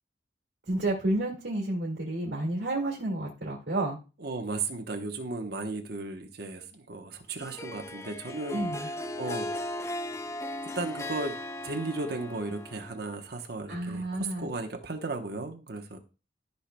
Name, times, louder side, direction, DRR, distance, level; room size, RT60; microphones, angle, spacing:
voice 1, 0.7-4.0 8.5-8.9 13.7-14.5, right 1 dB, 85° right, -3 dB, 2.0 m, -30 dB
voice 2, 4.2-9.5 10.6-11.4 11.6-16.0, right 3 dB, 65° right, 4 dB, 1.0 m, -35 dB
Harp, 7.4-13.2, left 1 dB, 15° left, 0.5 m, -37 dB
13.0 x 5.6 x 2.2 m, 0.33 s
head